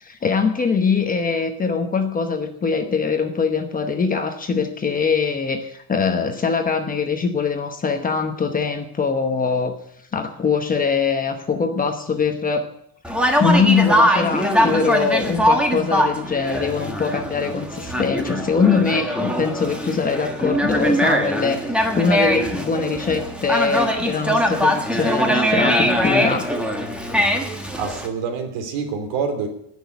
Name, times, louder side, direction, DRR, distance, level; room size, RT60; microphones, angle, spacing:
voice 1, 0.0-9.8 10.1-12.7 13.4-26.5, left 5 dB, 20° left, 5 dB, 1.0 m, -22 dB
Conversation, 13.0-28.1, equal, ahead, 1.3 m, -21 dB
voice 2, 27.8-29.5, right 5 dB, 65° right, 6 dB, 3.1 m, -26 dB
17.5 x 6.4 x 8.1 m, 0.74 s
cardioid pair, 170°, 46 cm